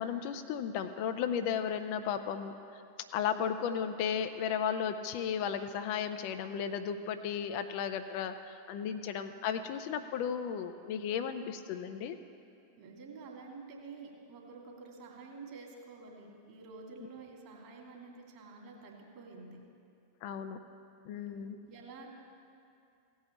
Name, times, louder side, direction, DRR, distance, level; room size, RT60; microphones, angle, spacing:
voice 1, 0.0-2.6 3.1-12.2 20.2-20.6 21.0-21.6, left 8 dB, 45° left, 8 dB, 0.6 m, -34 dB
voice 2, 12.8-19.6 21.1-22.1, right 4 dB, 40° right, -1 dB, 2.8 m, -49 dB
16.5 x 5.6 x 8.3 m, 2.5 s
figure-of-eight pair, 90°, 0 cm